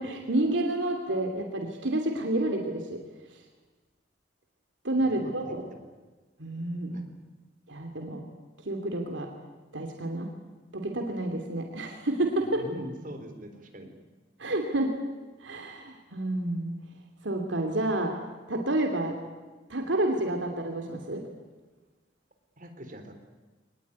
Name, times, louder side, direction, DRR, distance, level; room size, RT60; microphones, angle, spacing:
voice 1, 0.0-3.0 4.8-5.7 6.4-7.0 7.7-8.2 8.7-9.3 9.7-10.3 10.7-12.7 14.4-14.9 15.4-16.7 17.2-18.1 18.5-19.2 19.7-21.2, right 1 dB, 85° right, 3 dB, 2.9 m, -29 dB
voice 2, 12.4-13.9 22.6-23.1, right 1 dB, 45° right, 6 dB, 3.9 m, -42 dB
24.0 x 20.0 x 9.6 m, 1.3 s
head